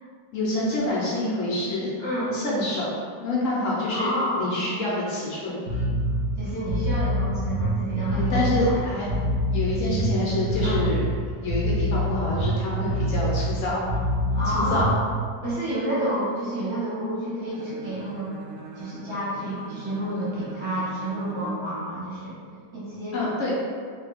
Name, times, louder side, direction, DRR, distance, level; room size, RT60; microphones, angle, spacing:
voice 1, 0.3-1.9 2.3-2.9 3.2-4.1 4.4-5.6 8.1-9.1 9.5-11.0 11.4-13.9 14.5-14.9 23.1-23.5, left 2 dB, 65° left, -6 dB, 0.8 m, -27 dB
voice 2, 2.0-2.4 3.9-4.4 6.4-8.8 10.6-10.9 14.3-14.9 15.4-18.3 18.8-22.3 22.7-23.2, right 1 dB, 20° right, -11 dB, 0.8 m, -29 dB
Bass guitar, 5.7-15.1, equal, 60° right, 0.8 m, -26 dB
Bowed string instrument, 17.5-21.7, right 2 dB, 80° right, 1.2 m, -42 dB
3.1 x 2.2 x 3.3 m, 2.1 s
omnidirectional pair, 1.9 m